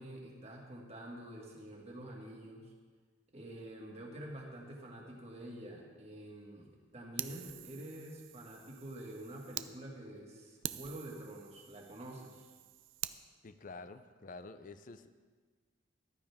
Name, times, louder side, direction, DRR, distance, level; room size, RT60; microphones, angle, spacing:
voice 1, 0.0-2.7 3.3-6.7 6.9-12.5, right 1 dB, 35° right, -2 dB, 2.1 m, -47 dB
Fire, 7.2-9.7 10.2-10.3 10.6-13.2, right 12 dB, 90° right, 0.5 m, -45 dB
voice 2, 13.4-15.1, left 3 dB, 45° left, 11 dB, 0.6 m, -49 dB
14.0 x 12.5 x 3.6 m, 1.5 s
head